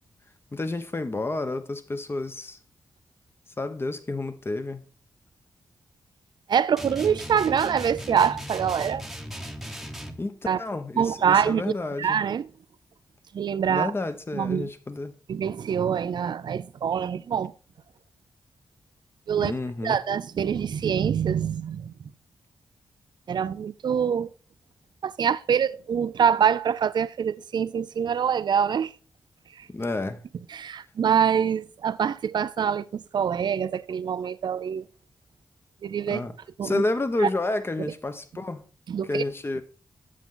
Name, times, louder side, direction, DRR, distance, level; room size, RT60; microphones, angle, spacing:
voice 1, 0.5-2.6 3.6-4.9 10.2-12.2 13.7-15.1 19.4-20.0 29.7-30.2 36.1-36.3 36.6-38.6 39.0-39.6, left 2 dB, 30° left, 1.1 m, -30 dB
voice 2, 6.5-9.1 10.5-10.6 11.0-12.5 13.3-13.9 14.3-14.7 15.3-17.5 19.3-19.5 19.8-21.9 23.3-24.3 25.0-28.9 29.6-29.7 30.5-34.8 35.8-36.2 36.6-36.8 37.2-37.3 38.9-39.2, right 7 dB, 60° right, 0.4 m, -25 dB
sound 1, 6.8-10.3, equal, ahead, 1.1 m, -37 dB
8.2 x 7.2 x 3.9 m
cardioid pair, 70°, 8 cm